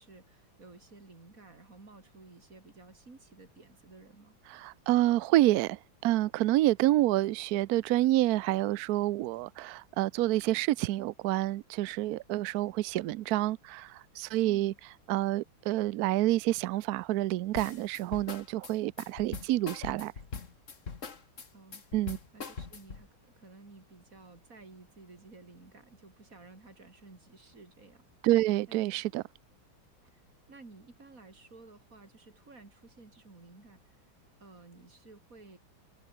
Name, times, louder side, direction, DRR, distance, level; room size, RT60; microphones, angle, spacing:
voice 1, 0.0-4.4 14.4-14.8 21.5-21.8 22.3-23.1 23.4-28.0 28.7-28.8 30.0-30.2 30.5-34.0 34.4-35.6, right 3 dB, 40° right, 4.2 m, -54 dB
voice 2, 4.5-14.7 15.1-20.1 21.9-22.2 28.2-29.2, right 16 dB, 85° right, 0.8 m, -28 dB
sound 1, 17.6-23.1, left 5 dB, 40° left, 2.2 m, -42 dB
omnidirectional pair, 2.2 m